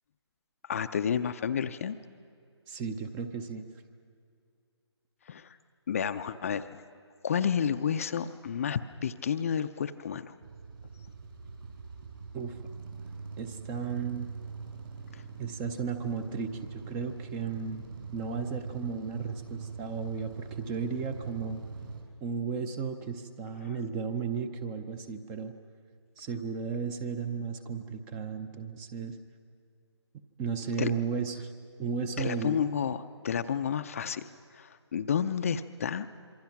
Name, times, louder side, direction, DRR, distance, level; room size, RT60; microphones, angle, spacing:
voice 1, 0.6-2.0 5.3-5.6 5.9-6.8 7.2-10.3 15.1-15.2 30.8-30.9 32.2-34.2 34.5-36.1, left 7 dB, 30° left, 10 dB, 0.6 m, -31 dB
voice 2, 2.7-3.6 12.3-12.7 13.4-14.3 15.4-17.8 18.1-21.6 22.2-25.5 26.2-29.2 30.4-31.5 31.8-32.6, right 5 dB, 10° right, 10 dB, 0.6 m, -34 dB
sound 1, 10.4-22.0, right 5 dB, 55° right, 6.0 m, -42 dB
26.0 x 24.0 x 5.9 m, 2.4 s
figure-of-eight pair, 155°, 15 cm